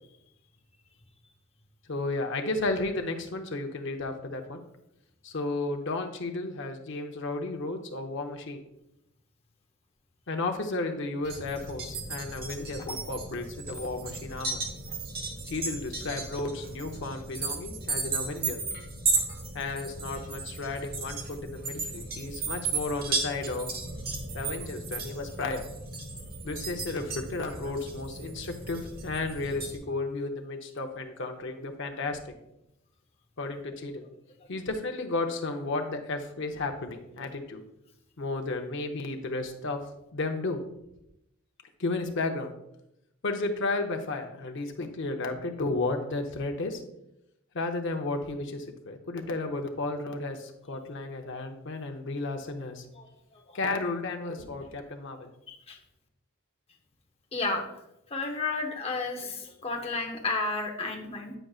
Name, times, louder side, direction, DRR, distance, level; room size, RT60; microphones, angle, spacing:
voice 1, 1.9-4.6 5.2-8.6 10.3-14.6 15.5-18.6 19.5-23.7 24.3-25.7 26.4-32.3 33.4-34.0 34.5-37.6 38.2-39.8 40.1-40.6 41.8-42.5 43.2-46.8 47.5-52.9 53.5-55.3, left 2 dB, 60° left, 4 dB, 0.7 m, -33 dB
sound 1, 11.2-29.8, right 3 dB, 45° right, 1.0 m, -35 dB
voice 2, 55.5-55.8 57.3-57.6 58.1-61.3, left 3 dB, 30° left, 3 dB, 0.8 m, -32 dB
8.9 x 5.0 x 2.4 m, 0.85 s
head